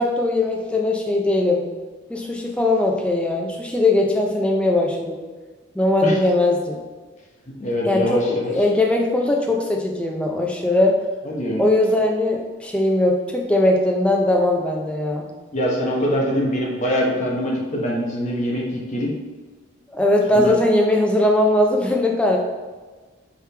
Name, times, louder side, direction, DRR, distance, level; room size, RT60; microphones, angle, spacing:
voice 1, 0.0-1.6 2.1-5.2 5.8-6.8 7.9-11.0 11.6-15.3 19.9-22.4, left 1 dB, 5° left, 0 dB, 0.4 m, -20 dB
voice 2, 7.6-8.5 11.2-11.6 15.5-19.1 20.3-20.6, equal, 35° left, -3 dB, 0.9 m, -23 dB
4.8 x 3.3 x 3.3 m, 1.4 s
head